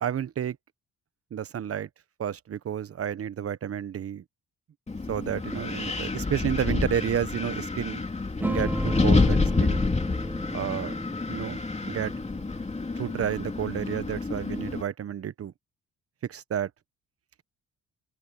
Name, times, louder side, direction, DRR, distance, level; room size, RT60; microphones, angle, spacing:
voice 1, 0.0-0.6 1.3-1.9 2.2-4.2 5.1-8.0 8.4-9.8 10.5-10.9 11.3-11.6 11.9-12.1 12.9-15.5 16.3-16.7, right 9 dB, 50° right, 1.1 m, -31 dB
Wind, 4.9-14.8, left 3 dB, 20° left, 2.9 m, -28 dB
sound 1, 8.4-13.3, right 1 dB, 5° right, 0.9 m, -35 dB
open air
cardioid pair, 90°, 30 cm